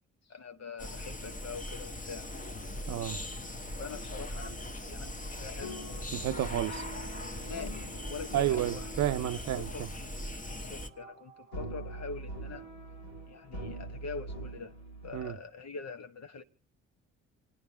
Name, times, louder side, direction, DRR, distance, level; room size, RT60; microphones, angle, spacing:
voice 1, 0.2-2.3 3.8-5.8 7.3-9.1 9.5-9.9 10.5-12.6 13.3-14.7 15.0-16.4, left 4 dB, 45° left, 1.3 m, -44 dB
sound 1, 0.8-10.9, left 1 dB, 20° left, 1.3 m, -40 dB
voice 2, 2.9-3.2 6.1-6.8 8.3-9.9 15.1-15.4, right 13 dB, 50° right, 0.7 m, -31 dB
sound 2, 5.6-15.4, right 2 dB, 80° left, 2.6 m, -45 dB
28.0 x 9.9 x 4.3 m
figure-of-eight pair, 40°, 36 cm